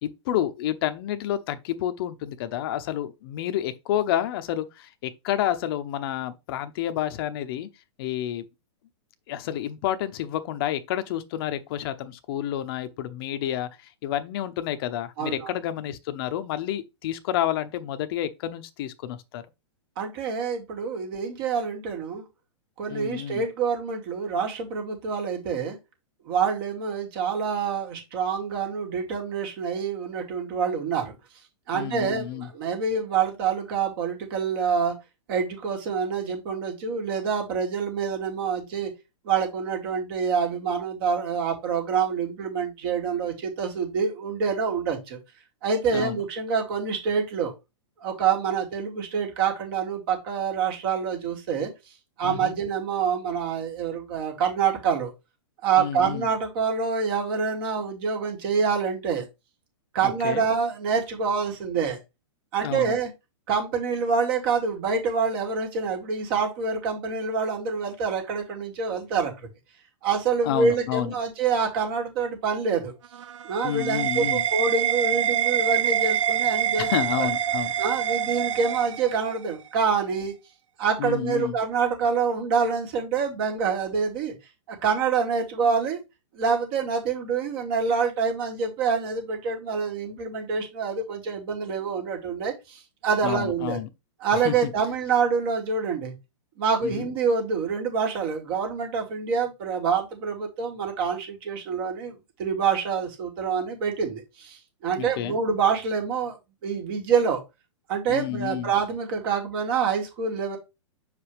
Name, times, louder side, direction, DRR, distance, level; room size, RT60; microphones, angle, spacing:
voice 1, 0.0-7.7 8.0-8.4 9.3-19.4 22.9-23.4 31.7-32.5 45.9-46.2 52.2-52.6 55.8-56.3 60.0-60.4 62.6-62.9 70.4-71.1 73.6-74.4 76.8-77.7 81.0-81.6 93.2-93.9 94.4-94.7 96.8-97.1 105.0-105.4 108.1-108.7, left 11 dB, 50° left, 0.7 m, -29 dB
voice 2, 15.2-15.5 20.0-22.2 22.8-25.8 26.3-31.1 31.7-34.9 35.3-38.9 39.2-45.2 45.6-47.5 48.0-51.7 52.2-55.1 55.6-59.2 59.9-62.0 62.5-63.1 63.5-69.3 70.0-72.9 73.4-76.9 77.2-77.3 77.8-80.3 80.8-84.3 84.7-86.0 86.3-93.8 94.2-96.1 96.6-106.4 106.6-107.4 107.9-110.6, right 6 dB, 50° right, 2.6 m, -26 dB
sound 1, 73.0-79.5, right 10 dB, 85° right, 0.4 m, -26 dB
6.7 x 4.9 x 3.3 m
hypercardioid pair, 125°, 15 cm